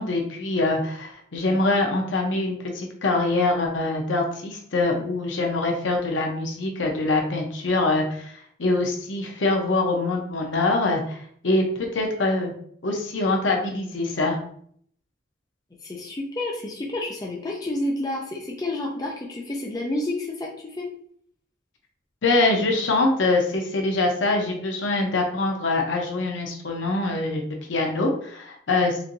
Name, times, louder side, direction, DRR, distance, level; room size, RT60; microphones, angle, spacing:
voice 1, 0.0-12.5 12.8-14.4 22.2-29.0, left 2 dB, 90° left, 1 dB, 0.8 m, -24 dB
voice 2, 15.8-20.9, left 1 dB, 20° left, -2 dB, 0.4 m, -30 dB
4.4 x 2.6 x 2.6 m, 0.62 s
head